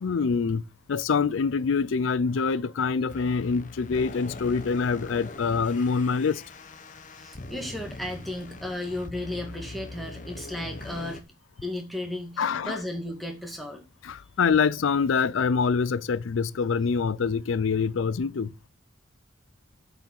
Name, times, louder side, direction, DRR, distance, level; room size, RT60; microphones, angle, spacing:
voice 1, 0.0-0.6 0.9-6.4 12.4-12.8 14.0-18.5, left 5 dB, 80° left, 0.4 m, -25 dB
sound 1, 3.1-11.2, left 2 dB, 40° left, 0.9 m, -42 dB
voice 2, 7.1-11.2 11.6-13.8, left 1 dB, ahead, 2.0 m, -34 dB
7.7 x 6.9 x 7.3 m
head